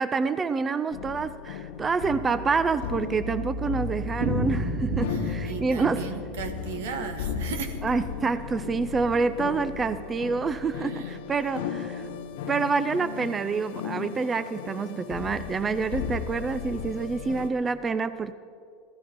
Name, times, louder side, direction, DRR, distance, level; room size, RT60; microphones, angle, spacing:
voice 1, 0.0-6.1 7.8-12.1 12.5-18.3, right 4 dB, 20° right, 13 dB, 0.4 m, -27 dB
sound 1, 0.9-17.5, left 6 dB, 85° left, 0.8 m, -35 dB
Thunder, 2.5-8.6 8.8-8.9 9.2-9.3 9.6-9.7 10.2-10.5, right 2 dB, 55° right, 2.9 m, -34 dB
voice 2, 5.1-7.8 10.8-11.1, right 7 dB, 85° right, 7 dB, 1.4 m, -36 dB
15.5 x 12.0 x 5.3 m, 2.4 s
supercardioid pair, 130°, 0 cm